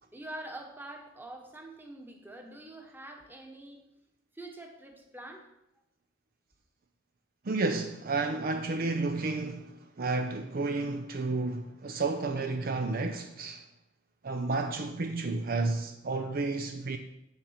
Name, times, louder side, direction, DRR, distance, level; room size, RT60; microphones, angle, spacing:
voice 1, 0.0-3.8 4.3-5.5, right 1 dB, 10° right, 1.2 m, -45 dB
voice 2, 7.4-13.6 14.2-17.0, right 3 dB, 50° right, 0.6 m, -31 dB
7.3 x 7.2 x 5.7 m
head